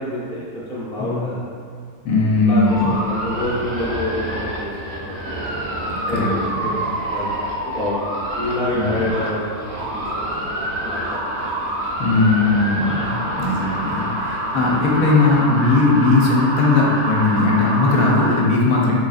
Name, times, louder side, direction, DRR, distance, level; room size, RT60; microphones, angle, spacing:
voice 1, 0.0-1.4 2.4-5.5 6.1-7.3 7.6-11.5 14.5-14.6, left 1 dB, 5° left, -9 dB, 0.6 m, -28 dB
voice 2, 2.0-2.9 5.9-6.7 8.7-9.1 12.0-18.9, left 3 dB, 65° left, -3 dB, 1.1 m, -18 dB
sound 1, 2.7-18.4, right 1 dB, 55° right, 1.1 m, -27 dB
3.9 x 3.6 x 2.4 m, 2.1 s
omnidirectional pair, 1.7 m